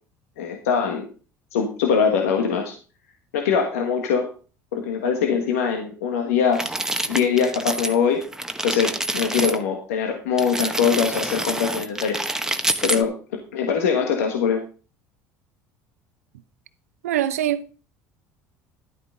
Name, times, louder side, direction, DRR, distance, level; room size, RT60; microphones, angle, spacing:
voice 1, 0.4-1.1 1.5-2.7 3.3-4.3 4.7-6.7 7.1-8.2 8.6-12.2 12.8-13.1 13.5-14.6, left 6 dB, 85° left, 1.6 m, -22 dB
sound 1, 6.5-8.0 8.2-9.6 10.4-13.0, right 1 dB, 5° right, 1.0 m, -27 dB
voice 2, 17.0-17.7, right 11 dB, 90° right, 0.7 m, -23 dB
12.0 x 8.8 x 3.8 m
hypercardioid pair, 80°, 8 cm